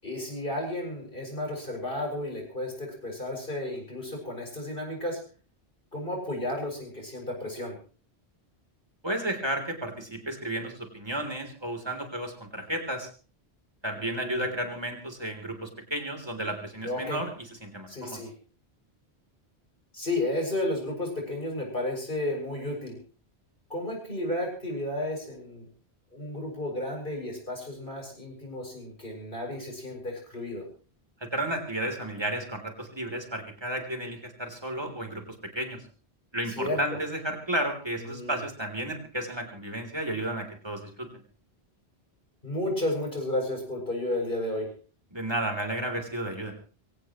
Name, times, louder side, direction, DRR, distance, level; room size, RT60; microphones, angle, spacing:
voice 1, 0.0-5.2 5.9-7.8 13.9-14.5 16.8-17.2 17.9-18.3 19.9-23.0 23.7-25.7 26.1-30.7 36.5-36.8 38.1-38.4 42.4-44.7, left 1 dB, 55° left, 0 dB, 7.4 m, -32 dB
voice 2, 9.0-13.1 13.8-17.3 17.6-18.2 31.3-35.2 35.6-35.8 36.3-41.1 45.1-46.5, right 1 dB, 25° right, 3 dB, 3.6 m, -32 dB
24.5 x 17.0 x 3.2 m, 0.39 s
omnidirectional pair, 1.1 m